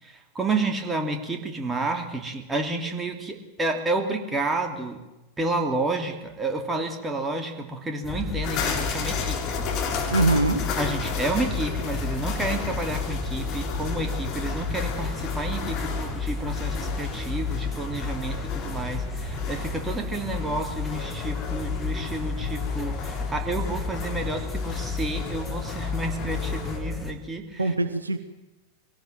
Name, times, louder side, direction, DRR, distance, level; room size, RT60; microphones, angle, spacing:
voice 1, 0.0-5.0 5.4-9.7 10.0-10.1 10.7-27.6, right 2 dB, 15° right, 4 dB, 2.9 m, -30 dB
sound 1, 8.0-27.1, left 4 dB, 5° left, 2.8 m, -31 dB
sound 2, 8.4-26.8, left 7 dB, 40° left, 3.3 m, -35 dB
voice 2, 10.1-10.7 27.6-28.2, right 2 dB, 80° right, 9 dB, 1.3 m, -22 dB
22.5 x 17.5 x 7.8 m, 1.1 s
figure-of-eight pair, 90°, 0 cm